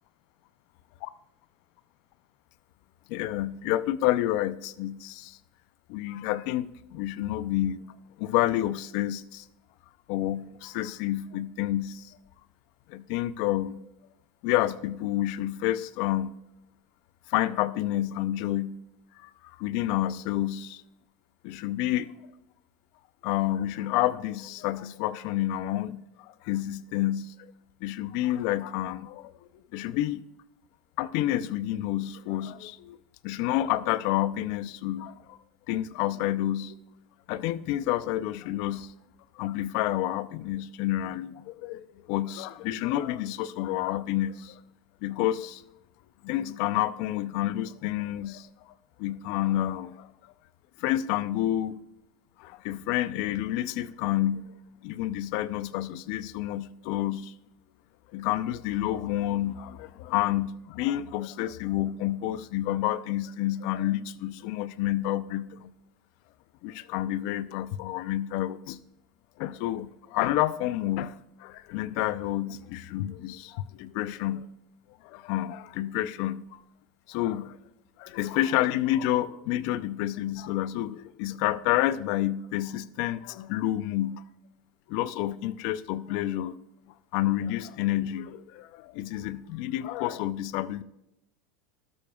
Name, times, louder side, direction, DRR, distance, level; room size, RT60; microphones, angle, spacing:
voice 1, 3.1-5.4 5.9-7.8 8.2-9.5 10.1-12.2 12.9-13.8 14.4-16.3 17.3-18.8 19.2-20.8 21.4-22.1 23.2-27.5 27.8-30.2 31.0-33.0 33.2-35.4 35.7-36.7 37.3-38.9 39.4-44.6 45.0-45.6 46.2-48.5 49.0-50.1 50.8-51.8 52.4-54.5 54.8-57.3 58.1-65.7 66.6-68.8 69.4-74.5 75.0-76.6 77.1-77.6 78.0-84.2 84.9-86.6 87.1-90.8, left 13 dB, 65° left, 0.5 m, -29 dB
13.0 x 12.0 x 2.3 m
supercardioid pair, 110°, 0 cm